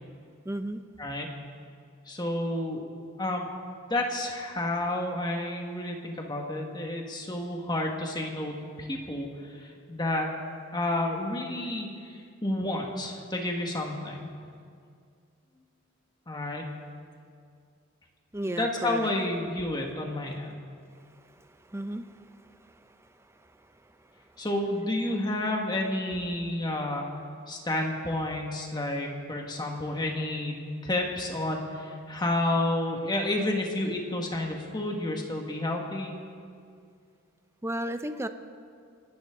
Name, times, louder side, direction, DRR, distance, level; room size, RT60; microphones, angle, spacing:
voice 1, 0.5-0.8 18.3-19.1 21.7-22.2 22.8-22.9 37.6-38.3, right 1 dB, 15° right, 9 dB, 0.6 m, -33 dB
voice 2, 2.1-2.8 3.2-3.5 3.9-9.3 9.6-10.3 10.7-11.9 12.4-14.2 16.3-16.6 18.5-20.5 24.4-27.1 27.5-30.5 30.8-36.2, left 1 dB, 20° left, 1 dB, 1.7 m, -30 dB
28.5 x 11.5 x 3.8 m, 2.3 s
head